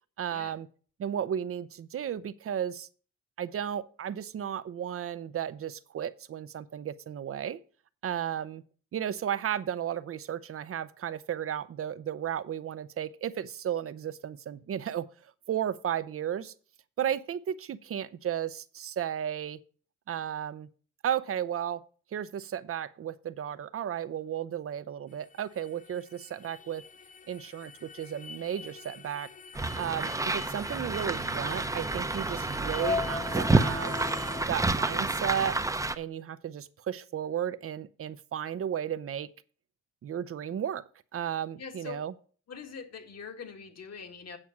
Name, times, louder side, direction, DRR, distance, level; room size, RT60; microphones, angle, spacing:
voice 1, 0.2-0.7 1.0-2.9 3.4-7.6 8.0-8.6 8.9-15.1 15.5-16.5 17.0-19.6 20.1-20.7 21.0-21.8 22.1-26.8 27.3-29.3 29.8-34.0 34.5-35.6 36.0-39.3 40.0-40.8 41.1-42.1, right 9 dB, 50° right, 0.7 m, -34 dB
sound 1, 25.1-34.4, left 5 dB, 25° left, 0.5 m, -41 dB
sound 2, 29.5-35.9, right 2 dB, 10° right, 0.7 m, -29 dB
voice 2, 41.6-42.1 42.5-44.4, left 5 dB, 55° left, 1.9 m, -43 dB
8.9 x 6.2 x 5.8 m
cardioid pair, 90°, 30 cm